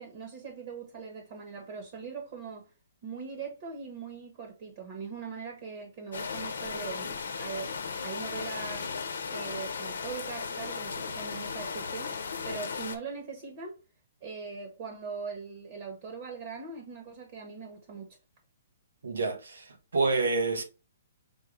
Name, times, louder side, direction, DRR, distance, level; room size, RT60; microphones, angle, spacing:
voice 1, 0.0-2.7 3.0-7.7 8.0-8.9 9.3-12.1 12.4-13.8 14.2-18.2, right 5 dB, 40° right, 1.2 m, -41 dB
sound 1, 6.1-13.0, left 5 dB, 80° left, 0.7 m, -36 dB
voice 2, 19.0-20.6, right 3 dB, 90° right, 1.2 m, -28 dB
5.6 x 2.2 x 3.2 m
hypercardioid pair, 150°, 0 cm